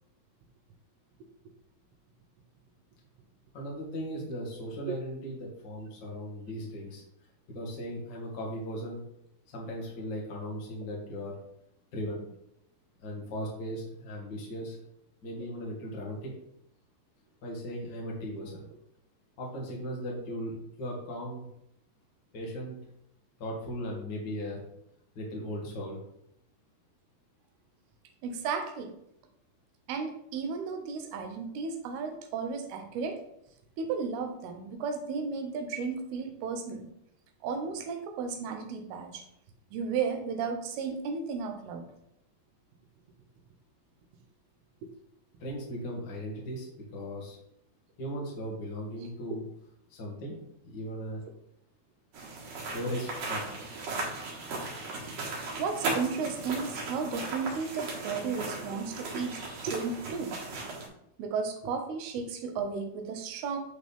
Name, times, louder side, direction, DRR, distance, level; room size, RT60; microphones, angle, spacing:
voice 1, 3.5-7.0 7.5-9.0 9.5-11.3 11.9-12.2 13.0-14.8 15.2-16.3 17.4-18.7 19.4-21.4 22.3-22.8 23.4-24.6 25.1-26.0 45.4-47.4 48.0-49.4 49.9-50.4 50.7-51.2 52.7-53.5, equal, 50° left, -2 dB, 1.2 m, -37 dB
voice 2, 28.2-28.9 29.9-33.2 33.8-36.9 37.4-39.3 39.7-41.9 55.6-60.4 61.2-63.6, right 5 dB, 75° right, 6 dB, 2.6 m, -34 dB
sound 1, 52.1-60.9, right 3 dB, 55° right, 2.2 m, -37 dB
9.1 x 4.0 x 3.5 m, 0.78 s
omnidirectional pair, 4.8 m